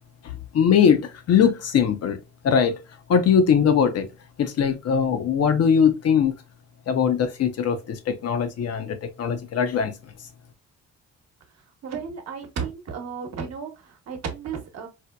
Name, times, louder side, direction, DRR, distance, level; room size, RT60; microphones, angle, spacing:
voice 1, 0.5-2.2 2.4-2.8 3.1-4.1 4.4-6.3 6.9-9.9, left 7 dB, 55° left, 0.6 m, -21 dB
voice 2, 11.8-14.9, right 6 dB, 60° right, 1.0 m, -33 dB
4.3 x 2.1 x 2.2 m
cardioid pair, 90°, 30 cm